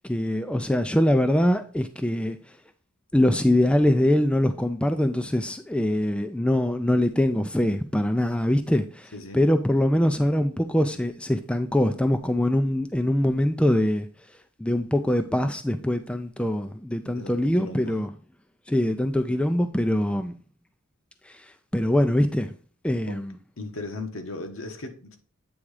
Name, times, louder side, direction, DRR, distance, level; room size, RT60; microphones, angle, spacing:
voice 1, 0.0-2.4 3.1-14.1 14.6-18.1 18.7-20.3 21.3-21.5 21.7-22.5 22.8-23.3, left 1 dB, 5° left, 0.4 m, -23 dB
voice 2, 17.0-18.0 23.0-23.2 23.6-25.2, left 2 dB, 70° left, 1.2 m, -37 dB
8.6 x 3.6 x 4.8 m
head